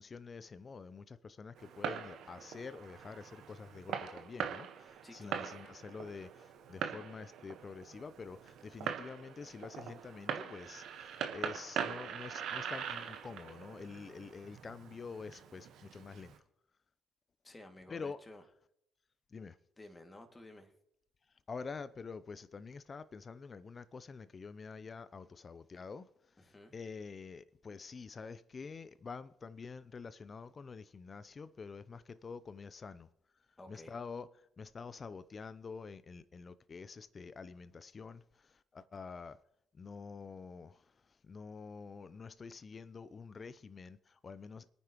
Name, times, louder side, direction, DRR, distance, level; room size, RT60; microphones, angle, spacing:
voice 1, 0.0-16.3 17.9-18.2 19.3-19.6 21.5-26.1 26.4-33.1 33.7-34.3 34.6-39.4 39.7-44.7, left 5 dB, 35° left, 0.6 m, -47 dB
Fireworks, 1.6-16.4, right 8 dB, 65° right, 1.3 m, -42 dB
voice 2, 5.0-5.5 17.4-18.4 19.8-20.7 26.5-26.8 33.6-33.9, left 1 dB, 20° left, 2.3 m, -53 dB
25.5 x 9.6 x 3.1 m
hypercardioid pair, 50°, 0 cm